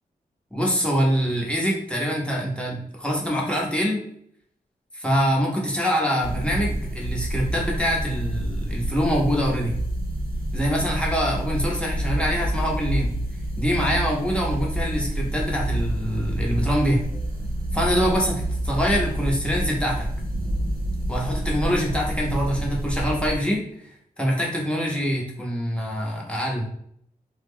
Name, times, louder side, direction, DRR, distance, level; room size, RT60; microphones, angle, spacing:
voice 1, 0.5-4.0 4.9-9.8 10.5-13.1 13.6-17.0 17.7-20.1 21.1-23.9 24.2-26.7, equal, 5° left, -3 dB, 0.8 m, -24 dB
sound 1, 6.2-23.4, right 1 dB, 70° right, 0.7 m, -28 dB
2.4 x 2.1 x 3.5 m, 0.68 s
wide cardioid pair, 70°, 16 cm